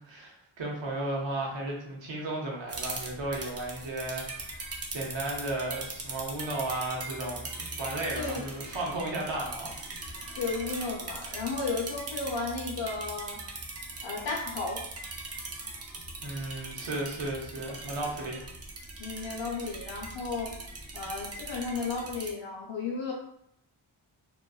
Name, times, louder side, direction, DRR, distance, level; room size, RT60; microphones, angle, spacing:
voice 1, 0.0-9.7 16.2-18.4, right 2 dB, 65° right, -2 dB, 0.8 m, -34 dB
sound 1, 2.7-22.3, right 2 dB, 35° right, 0.4 m, -40 dB
voice 2, 10.4-13.4 14.0-14.8 19.0-20.5 20.9-23.1, left 4 dB, 65° left, -2 dB, 0.8 m, -33 dB
2.4 x 2.2 x 2.3 m, 0.74 s
wide cardioid pair, 125°, 49 cm